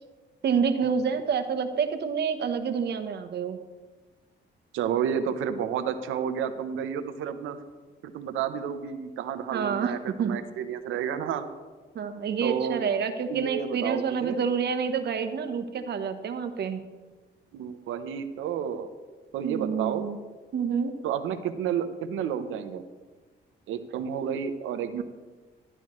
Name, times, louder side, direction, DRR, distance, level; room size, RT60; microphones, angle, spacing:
voice 1, 0.4-3.6 9.5-10.4 11.9-16.8 19.4-20.2 20.5-21.0 25.0-25.1, right 6 dB, 60° right, 8 dB, 1.0 m, -28 dB
voice 2, 4.7-7.6 8.0-11.5 12.4-12.8 13.3-14.4 17.5-18.9 19.3-20.1 21.0-22.8 23.7-25.0, right 8 dB, 85° right, 10 dB, 0.8 m, -31 dB
12.5 x 11.0 x 3.1 m, 1.3 s
cardioid pair, 90°, 20 cm